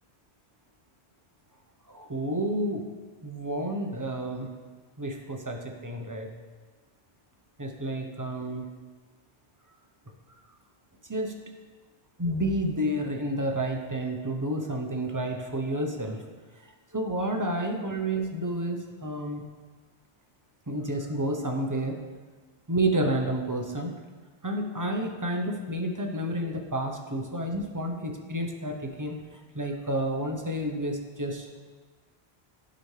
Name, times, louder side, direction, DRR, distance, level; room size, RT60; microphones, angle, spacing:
voice 1, 1.9-2.9 3.2-4.5 5.0-6.3 7.6-8.7 11.1-11.4 12.2-16.2 16.9-19.4 20.7-22.0 22.7-23.9 24.4-31.5, right 1 dB, 20° right, 2 dB, 0.7 m, -30 dB
12.0 x 5.0 x 3.3 m, 1.4 s
omnidirectional pair, 1.1 m